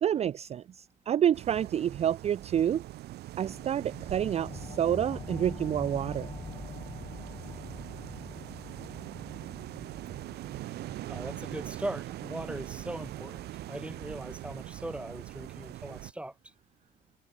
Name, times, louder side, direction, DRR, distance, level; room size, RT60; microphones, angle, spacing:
voice 1, 0.0-2.8 3.4-6.3, right 10 dB, 40° right, 0.5 m, -28 dB
sound 1, 1.3-16.1, right 15 dB, 75° right, 1.8 m, -42 dB
sound 2, 3.4-14.5, left 5 dB, 25° left, 1.2 m, -46 dB
voice 2, 11.1-16.5, right 1 dB, 5° right, 2.5 m, -39 dB
cardioid pair, 110°, 17 cm